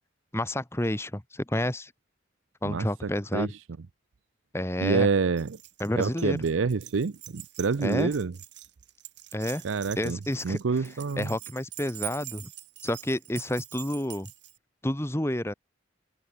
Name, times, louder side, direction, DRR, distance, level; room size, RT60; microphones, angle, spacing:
voice 1, 0.3-1.9 2.6-3.5 4.5-5.1 5.8-6.4 7.8-8.1 9.3-9.6 10.0-10.6 11.2-12.5 12.8-14.3 14.8-15.5, left 1 dB, 15° left, 1.4 m, -29 dB
voice 2, 4.8-5.6 6.0-8.3 9.6-10.2 10.4-11.3, right 4 dB, 85° right, 0.5 m, -27 dB
Keys jangling, 5.4-14.6, right 15 dB, 60° right, 2.6 m, -44 dB
head